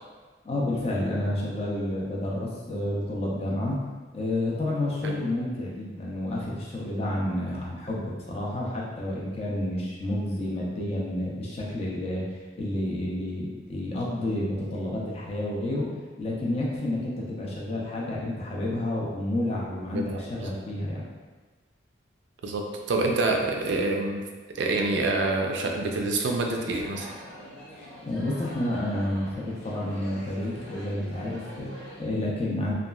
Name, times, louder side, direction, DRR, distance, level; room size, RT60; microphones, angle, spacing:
voice 1, 0.4-3.8 4.1-12.2 12.6-15.9 16.2-21.0 27.7-32.7, left 1 dB, 30° left, -4 dB, 0.4 m, -30 dB
voice 2, 19.9-20.5 22.4-24.3 24.6-27.1, right 2 dB, 65° right, 1 dB, 0.3 m, -27 dB
sound 1, 26.3-32.0, equal, 90° left, 0.6 m, -44 dB
2.9 x 2.3 x 2.3 m, 1.3 s
head